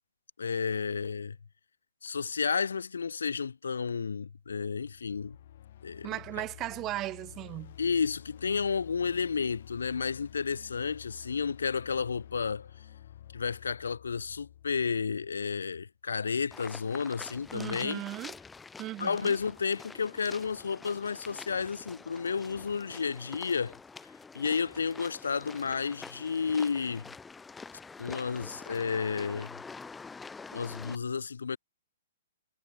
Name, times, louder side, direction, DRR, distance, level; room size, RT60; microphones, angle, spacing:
voice 1, 0.4-1.4 2.0-5.4 5.8-6.1 7.8-12.7 13.3-18.0 19.0-23.8 24.3-27.1 28.0-29.5 30.5-31.6, left 5 dB, 70° left, 0.9 m, -32 dB
sound 1, 4.8-15.8, left 12 dB, 55° left, 1.7 m, -51 dB
voice 2, 6.0-7.8 17.5-18.3 18.8-19.3, right 15 dB, 25° right, 0.8 m, -37 dB
sound 2, 16.5-31.0, left 4 dB, 10° left, 0.9 m, -46 dB
figure-of-eight pair, 120°, 0 cm